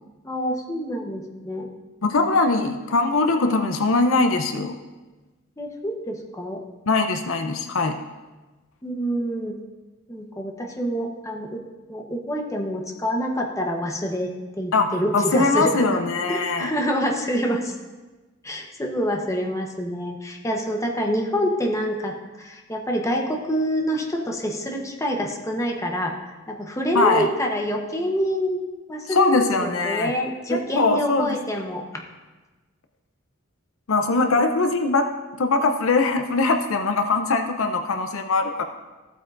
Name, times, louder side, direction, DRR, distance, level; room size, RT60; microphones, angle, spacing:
voice 1, 0.2-1.7 5.6-6.6 8.8-9.6 10.1-11.6 11.9-16.0 16.3-17.7 18.4-26.1 26.5-31.8, equal, 15° left, 1 dB, 0.9 m, -26 dB
voice 2, 2.0-4.8 6.9-8.0 14.7-16.7 26.9-27.3 29.1-30.1 30.5-31.4 33.9-35.1 35.4-38.6, left 3 dB, 70° left, 6 dB, 0.6 m, -21 dB
14.5 x 8.2 x 2.6 m, 1.2 s
head